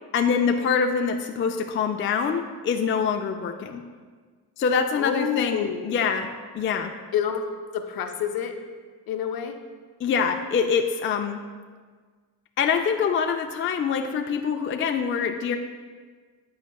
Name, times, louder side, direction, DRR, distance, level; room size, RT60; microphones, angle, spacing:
voice 1, 0.1-3.8 4.6-6.9 10.0-11.4 12.6-15.6, left 6 dB, 30° left, 5 dB, 0.4 m, -25 dB
voice 2, 5.0-6.0 7.1-7.4 7.7-8.6 9.1-9.6, left 8 dB, 55° left, 6 dB, 0.7 m, -28 dB
10.5 x 4.1 x 2.3 m, 1.5 s
supercardioid pair, 70°, 43 cm